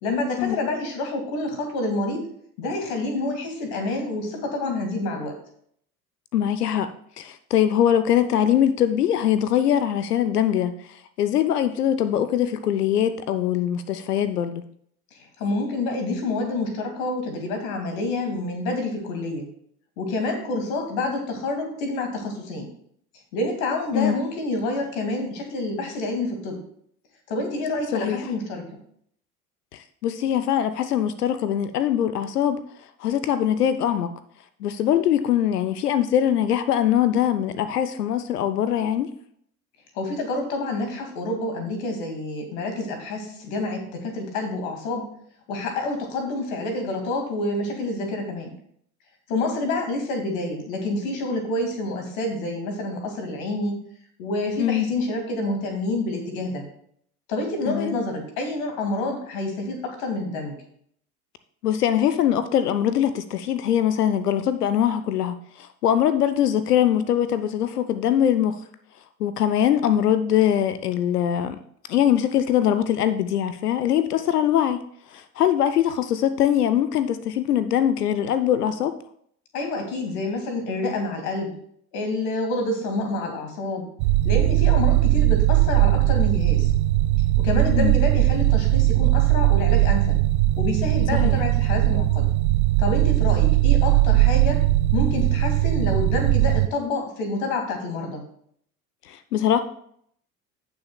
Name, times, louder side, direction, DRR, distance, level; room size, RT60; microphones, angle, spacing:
voice 1, 0.0-2.3 2.6-5.3 15.1-19.5 20.0-22.7 23.3-26.6 27.3-28.6 39.9-45.1 45.5-48.5 49.3-53.8 54.2-56.6 57.3-60.5 79.5-81.5 81.9-83.9 84.2-86.7 87.4-90.2 90.6-92.3 92.8-94.7 94.9-98.2, left 2 dB, 60° left, 4 dB, 2.3 m, -28 dB
voice 2, 6.3-6.9 7.2-10.7 11.2-14.6 23.9-24.2 27.9-28.2 29.7-32.6 33.0-34.1 34.6-39.1 54.6-54.9 57.7-58.0 61.6-68.6 69.2-71.6 71.9-74.8 75.1-79.0 87.8-87.9 91.1-91.4 99.1-99.6, left 10 dB, 75° left, 12 dB, 0.7 m, -22 dB
sound 1, 84.0-96.7, right 16 dB, 45° right, 0.5 m, -19 dB
17.0 x 6.1 x 2.3 m, 0.66 s
figure-of-eight pair, 70°, 47 cm